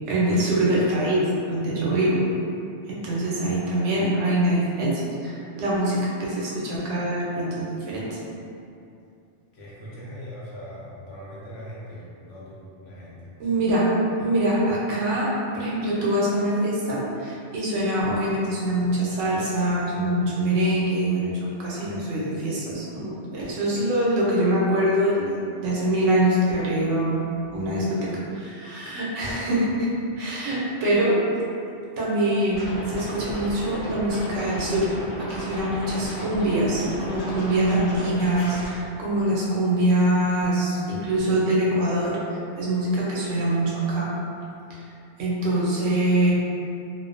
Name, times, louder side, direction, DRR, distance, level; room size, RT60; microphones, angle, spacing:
voice 1, 0.1-2.2 2.9-8.2 13.4-13.9 14.2-27.2 27.5-29.9 30.2-31.2 32.0-34.9 35.2-42.2 42.6-44.1 44.7-44.8 45.2-46.3, right 1 dB, 90° right, -6 dB, 1.0 m, -24 dB
voice 2, 9.5-13.3 27.6-27.7, equal, 85° left, -8 dB, 1.1 m, -40 dB
Scratching (performance technique), 32.5-38.7, equal, 55° left, 0.7 m, -35 dB
2.5 x 2.1 x 2.4 m, 2.6 s
omnidirectional pair, 1.2 m